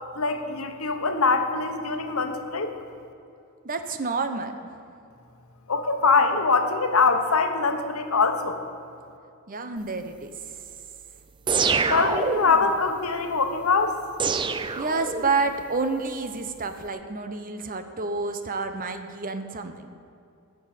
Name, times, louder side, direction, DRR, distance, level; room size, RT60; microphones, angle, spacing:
voice 1, 0.1-2.7 5.7-8.6 11.9-14.0, left 4 dB, 75° left, 6 dB, 1.1 m, -23 dB
voice 2, 3.6-4.5 9.5-10.3 14.8-19.9, right 4 dB, 40° right, 8 dB, 0.9 m, -29 dB
sound 1, 11.5-12.7 14.2-15.5, right 5 dB, 20° right, 0.4 m, -25 dB
14.0 x 6.3 x 9.0 m, 2.6 s
head